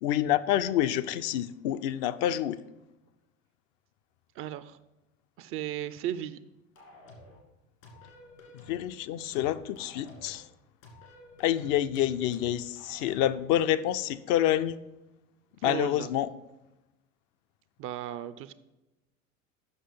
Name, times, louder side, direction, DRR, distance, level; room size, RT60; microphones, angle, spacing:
voice 1, 0.0-2.6 8.7-10.5 11.4-14.8 15.6-16.3, left 12 dB, 50° left, 12 dB, 0.4 m, -27 dB
voice 2, 4.4-4.8 5.4-6.4 15.6-16.1 17.8-18.5, right 12 dB, 35° right, 14 dB, 0.4 m, -35 dB
sound 1, 6.8-7.4 7.8-8.9 9.3-10.4 10.8-13.4, left 1 dB, 75° left, 2.4 m, -51 dB
7.9 x 6.2 x 5.3 m, 1.0 s
figure-of-eight pair, 75°, 39 cm